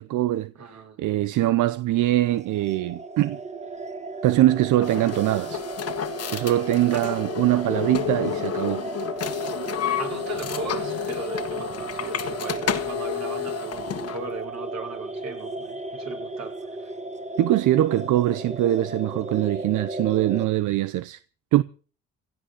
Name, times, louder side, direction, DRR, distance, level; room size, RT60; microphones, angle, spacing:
voice 1, 0.0-3.4 4.2-5.6 6.3-8.8 17.4-21.2 21.5-21.6, right 14 dB, 85° right, 0.8 m, -22 dB
voice 2, 0.5-1.0 6.9-7.1 10.0-16.9, right 4 dB, 60° right, 5.8 m, -37 dB
sound 1, 2.3-20.5, right 3 dB, 25° right, 1.6 m, -35 dB
sound 2, 4.8-14.2, left 10 dB, 55° left, 1.6 m, -31 dB
17.0 x 7.9 x 9.7 m
cardioid pair, 90°, 30 cm